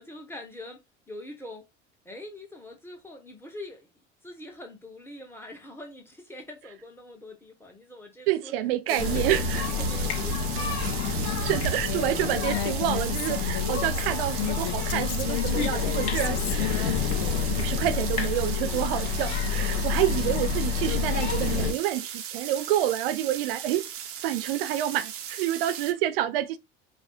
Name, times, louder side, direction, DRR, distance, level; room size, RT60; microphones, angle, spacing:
voice 1, 0.0-1.7 2.0-3.9 4.2-8.5 8.9-10.8, left 1 dB, 5° left, 1.4 m, -43 dB
voice 2, 8.3-9.7 11.4-17.0 17.5-23.9 24.2-26.6, right 13 dB, 55° right, 0.5 m, -28 dB
sound 1, 8.9-25.9, right 9 dB, 40° right, 0.8 m, -38 dB
sound 2, 9.0-21.7, left 5 dB, 65° left, 1.5 m, -28 dB
Female speech woman speaking, 12.5-17.6, left 14 dB, 40° left, 0.4 m, -34 dB
4.9 x 2.3 x 4.3 m
figure-of-eight pair, 65°, 36 cm